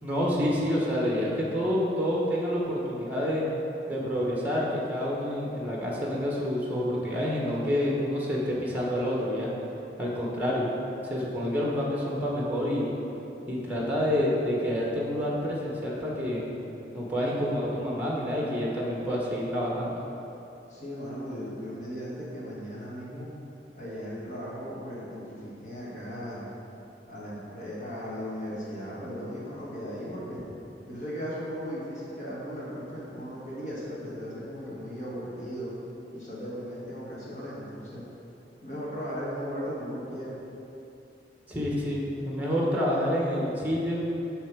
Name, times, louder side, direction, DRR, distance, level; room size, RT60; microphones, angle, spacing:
voice 1, 0.0-3.4 3.9-9.5 10.0-10.7 11.0-12.9 13.5-16.4 16.9-19.9 41.5-44.0, equal, 10° right, -4 dB, 1.2 m, -28 dB
voice 2, 20.7-23.3 23.7-26.5 27.0-30.4 30.8-35.7 36.1-38.0 38.6-40.4, equal, 45° left, -7 dB, 1.6 m, -37 dB
8.4 x 3.4 x 6.1 m, 2.9 s
head